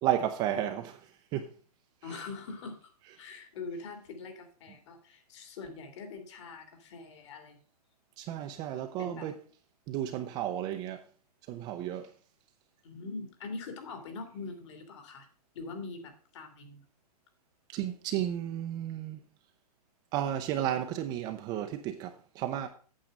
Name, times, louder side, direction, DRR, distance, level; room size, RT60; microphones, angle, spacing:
voice 1, 0.0-1.5 2.0-2.2 8.2-9.3 9.9-11.0 11.5-12.1 17.7-19.2 20.1-22.7, right 11 dB, 20° right, 0.6 m, -33 dB
voice 2, 2.0-2.9 3.2-7.6 9.0-9.3 12.8-15.3 15.5-16.8, left 4 dB, 45° left, 2.4 m, -43 dB
8.8 x 7.4 x 5.2 m
hypercardioid pair, 160°, 20 cm